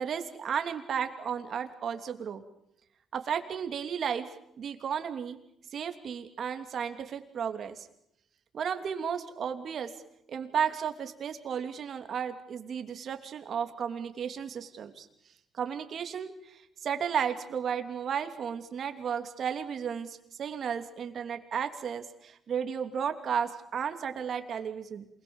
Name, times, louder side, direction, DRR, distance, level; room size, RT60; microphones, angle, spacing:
voice 1, 0.0-2.4 3.1-4.3 4.6-5.4 5.7-7.9 8.5-9.9 10.3-15.1 15.6-25.1, right 7 dB, 60° right, 7 dB, 3.0 m, -33 dB
27.5 x 21.5 x 7.3 m, 0.78 s
cardioid pair, 90°, 0 cm